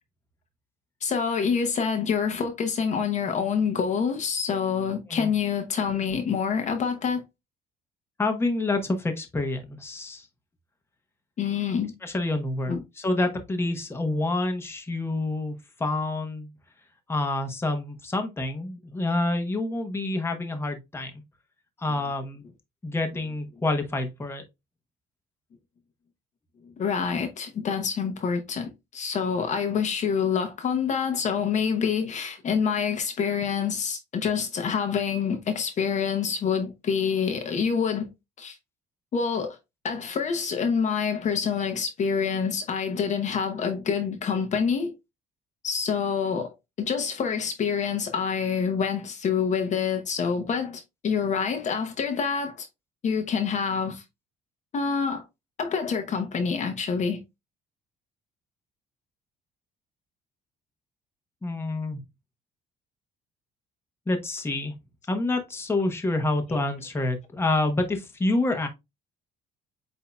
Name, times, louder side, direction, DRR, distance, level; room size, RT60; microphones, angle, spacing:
voice 1, 1.0-7.2 11.4-11.9 12.7-12.8 26.8-38.1 38.4-38.6 39.1-39.6 39.8-44.9 45.6-52.7 53.0-54.0 54.7-55.2 55.6-57.2, left 6 dB, 45° left, 0.8 m, -27 dB
voice 2, 8.2-10.3 12.0-16.5 17.1-21.1 21.8-22.4 22.8-24.4 61.4-62.0 64.1-64.7 65.1-68.7, left 2 dB, 15° left, 0.9 m, -27 dB
8.3 x 2.8 x 2.2 m
cardioid pair, 110°, 17 cm